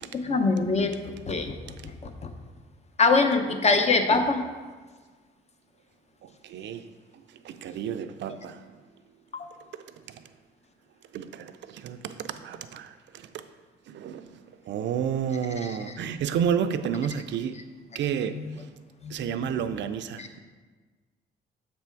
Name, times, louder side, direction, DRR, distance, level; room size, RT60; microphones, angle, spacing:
voice 1, 0.1-2.3 3.0-4.5 9.3-9.5 15.6-15.8 18.3-18.6 19.0-19.3 20.2-20.3, left 3 dB, 35° left, 6 dB, 0.7 m, -24 dB
voice 2, 6.2-6.9 7.4-8.7 9.7-10.3 11.1-13.5 13.9-17.6 17.9-18.4 19.1-20.4, right 8 dB, 65° right, 10 dB, 0.4 m, -31 dB
7.2 x 3.4 x 4.4 m, 1.4 s
cardioid pair, 90°, 20 cm